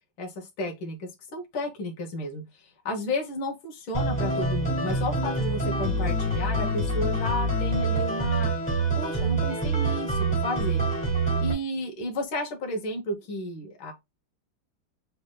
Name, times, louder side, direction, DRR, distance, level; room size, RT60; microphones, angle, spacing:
voice 1, 0.2-8.5 9.0-13.9, left 1 dB, 80° left, 1.8 m, -33 dB
sound 1, 3.9-11.5, right 2 dB, 5° left, 1.7 m, -26 dB
6.1 x 3.4 x 2.2 m
omnidirectional pair, 2.1 m